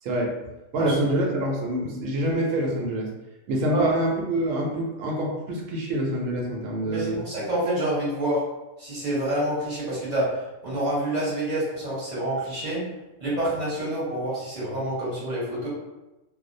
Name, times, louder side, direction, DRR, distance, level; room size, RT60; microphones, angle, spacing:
voice 1, 0.7-3.1 3.5-7.2, right 1 dB, 70° right, -1 dB, 0.9 m, -26 dB
voice 2, 6.8-8.4 8.8-12.8 13.2-15.7, right 1 dB, 35° right, -7 dB, 0.9 m, -27 dB
2.5 x 2.0 x 2.5 m, 1.0 s
omnidirectional pair, 1.5 m